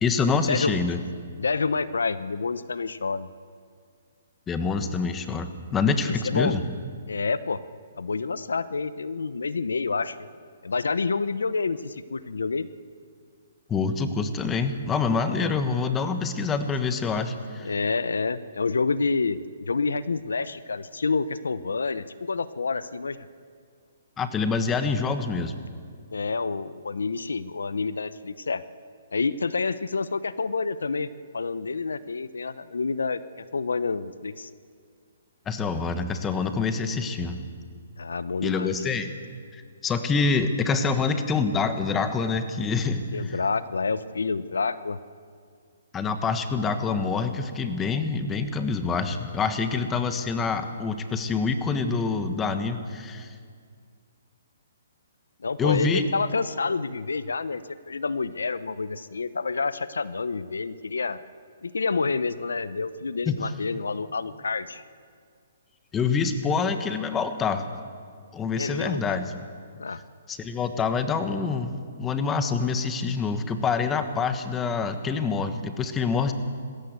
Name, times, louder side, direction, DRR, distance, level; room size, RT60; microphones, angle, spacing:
voice 1, 0.0-1.0 4.5-6.6 13.7-17.7 24.2-25.5 35.5-37.4 38.4-39.1 39.5-43.3 45.9-53.3 55.6-56.0 63.3-63.4 65.9-67.7 68.3-69.3 70.3-76.3, left 4 dB, 15° left, 9 dB, 1.3 m, -26 dB
voice 2, 1.4-3.3 6.1-6.6 7.1-7.6 8.0-10.3 10.6-12.7 15.3-15.5 17.6-23.2 26.1-28.6 29.1-33.2 33.5-34.5 38.0-38.8 43.1-45.0 55.4-61.2 61.6-64.8 68.6-69.2 69.8-70.0, left 4 dB, 90° left, 15 dB, 0.7 m, -28 dB
20.5 x 16.5 x 8.1 m, 2.1 s
hypercardioid pair, 150°, 0 cm